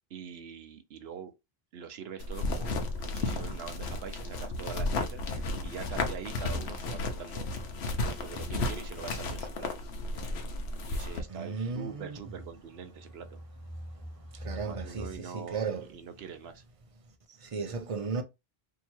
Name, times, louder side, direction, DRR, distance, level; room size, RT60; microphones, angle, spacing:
voice 1, 0.1-1.3 1.7-7.5 7.9-9.7 10.8-13.4 14.4-16.6, right 7 dB, 75° right, 0.9 m, -44 dB
sound 1, 2.2-11.2, left 2 dB, 75° left, 1.0 m, -33 dB
sound 2, 9.8-15.2, equal, 15° left, 1.4 m, -47 dB
voice 2, 11.3-12.2 14.3-15.9 17.3-18.2, right 4 dB, 40° right, 0.6 m, -35 dB
2.8 x 2.8 x 4.4 m
omnidirectional pair, 1.1 m